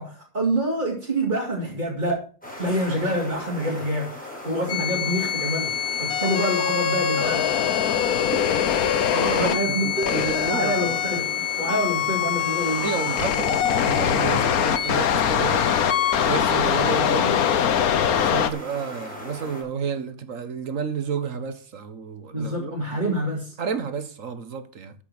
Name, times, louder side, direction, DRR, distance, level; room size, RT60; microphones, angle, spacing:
voice 1, 0.0-2.3 2.6-7.6 9.3-12.9 22.3-23.6, right 1 dB, 30° right, 2.8 m, -27 dB
sound 1, 2.4-19.6, left 1 dB, 5° left, 5.1 m, -38 dB
sound 2, 4.7-18.5, left 9 dB, 75° left, 1.4 m, -23 dB
voice 2, 9.1-10.7 12.8-15.9 16.2-17.4 18.0-23.1 23.6-24.9, right 6 dB, 60° right, 1.6 m, -31 dB
13.5 x 6.1 x 6.1 m
omnidirectional pair, 1.5 m